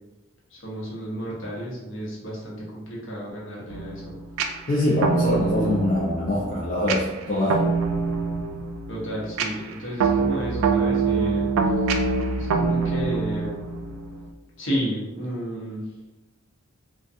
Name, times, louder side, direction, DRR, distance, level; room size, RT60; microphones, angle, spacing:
voice 1, 0.5-4.2 8.9-11.5 12.4-13.6 14.6-15.8, equal, 65° left, -5 dB, 0.8 m, -32 dB
sound 1, 3.7-14.3, right 4 dB, 80° right, 0.3 m, -25 dB
voice 2, 4.7-7.7, left 1 dB, 40° left, -6 dB, 0.4 m, -24 dB
2.6 x 2.2 x 2.4 m, 1.0 s
head